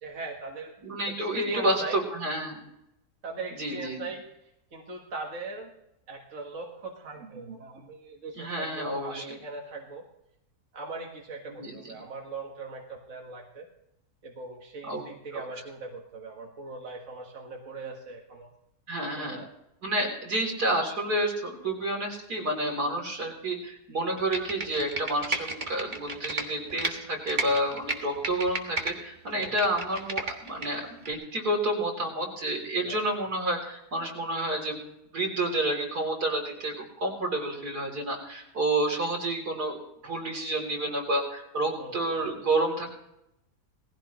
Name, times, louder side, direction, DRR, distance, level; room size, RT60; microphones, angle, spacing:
voice 1, 0.0-0.8 1.1-2.0 3.2-4.2 4.7-5.7 6.1-10.0 10.7-13.7 14.2-18.5 19.2-19.5 29.3-29.5 32.8-33.0 41.8-42.0, right 2 dB, 50° right, 0 dB, 2.0 m, -39 dB
voice 2, 0.8-2.6 3.6-4.0 8.4-9.2 11.6-11.9 14.8-15.0 15.3-15.4 18.9-19.4 19.8-34.8 35.1-42.9, right 1 dB, 80° right, 1 dB, 4.1 m, -29 dB
Computer keyboard, 24.2-26.9 27.3-28.9 29.3-30.7 31.1-31.2, right 2 dB, 30° right, 1.7 m, -32 dB
19.0 x 15.5 x 3.1 m, 0.83 s
omnidirectional pair, 1.7 m